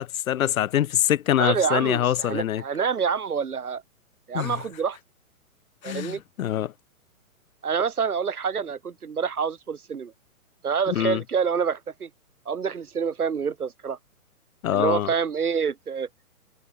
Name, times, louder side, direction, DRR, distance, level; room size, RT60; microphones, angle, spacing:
voice 1, 0.0-2.6 4.3-4.6 5.8-6.7 10.9-11.2 14.6-15.1, left 11 dB, 70° left, 0.6 m, -24 dB
voice 2, 1.4-3.8 4.3-5.0 5.8-6.2 7.6-10.1 10.6-12.1 12.5-14.0 14.7-16.1, right 6 dB, 90° right, 4.3 m, -27 dB
hypercardioid pair, 155°, 44 cm